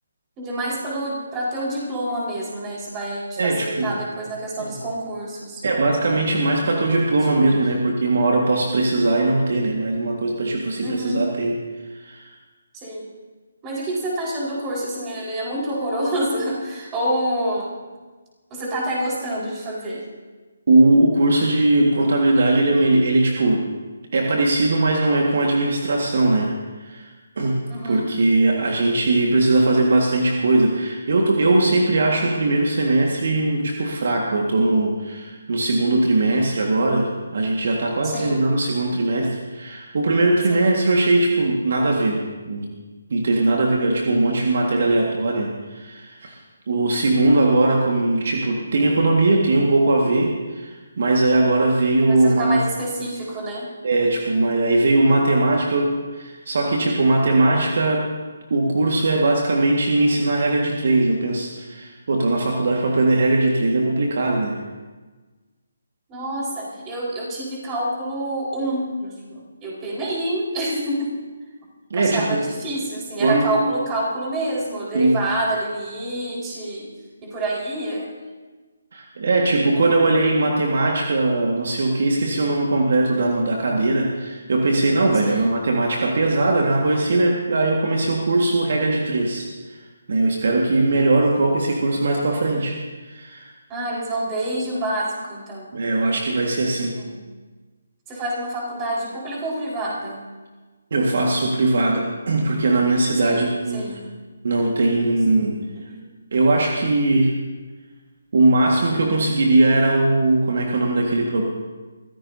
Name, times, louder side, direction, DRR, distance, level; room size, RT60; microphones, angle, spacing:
voice 1, 0.4-5.7 7.3-7.6 10.8-11.3 12.7-13.1 13.6-17.7 18.5-20.0 27.7-28.1 38.0-38.4 40.5-40.7 52.0-53.7 66.1-71.1 71.9-76.9 77.2-78.1 85.1-85.5 93.7-95.7 97.0-97.2 98.1-100.2 103.2-103.5 103.7-104.0 104.6-105.4 105.7-106.0, right 1 dB, 20° right, -4 dB, 4.8 m, -27 dB
voice 2, 3.4-4.0 4.6-4.8 5.6-12.3 20.7-23.6 24.1-26.5 26.8-42.7 43.1-46.4 46.7-52.6 53.8-58.1 58.5-64.6 71.9-72.4 73.2-73.7 74.9-75.2 78.9-89.8 90.1-93.5 95.7-97.0 100.9-104.0 104.4-105.6 106.3-107.3 108.3-111.4, right 2 dB, 55° right, 0 dB, 1.8 m, -20 dB
23.5 x 15.5 x 2.8 m, 1.3 s
figure-of-eight pair, 145°, 0 cm